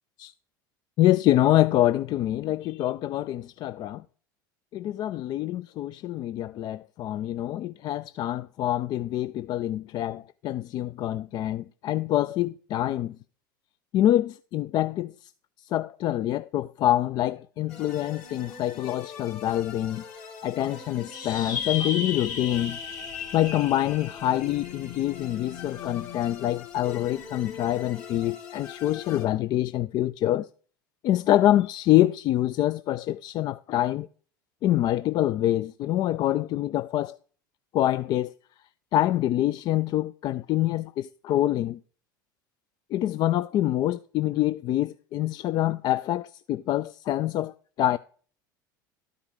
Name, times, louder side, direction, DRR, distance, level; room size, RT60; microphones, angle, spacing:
voice 1, 1.0-4.0 4.7-13.2 13.9-15.1 15.7-20.0 20.4-22.8 23.3-30.5 31.0-34.1 34.6-37.2 37.7-38.3 38.9-41.8 42.9-47.5 47.8-48.0, left 13 dB, 40° left, 0.4 m, -25 dB
sound 1, 17.7-29.3, left 7 dB, 55° left, 2.8 m, -42 dB
sound 2, 21.1-25.9, left 6 dB, 75° left, 2.3 m, -35 dB
12.5 x 4.9 x 4.8 m
figure-of-eight pair, 75°, 11 cm